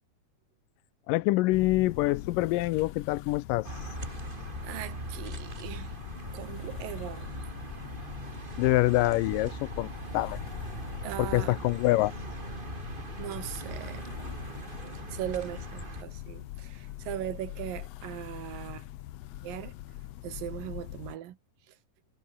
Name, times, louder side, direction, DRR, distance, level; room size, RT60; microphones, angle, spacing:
voice 1, 1.1-3.7 8.6-10.4 11.2-12.1 14.8-14.9, left 18 dB, 85° left, 2.3 m, -26 dB
sound 1, 1.5-21.2, left 14 dB, 70° left, 1.6 m, -42 dB
sound 2, 3.6-16.0, right 3 dB, 15° right, 2.3 m, -41 dB
voice 2, 4.6-5.9 6.3-7.4 11.0-11.8 13.2-14.1 15.1-18.9 19.4-19.7 20.2-21.4, right 12 dB, 85° right, 3.2 m, -39 dB
omnidirectional pair, 3.9 m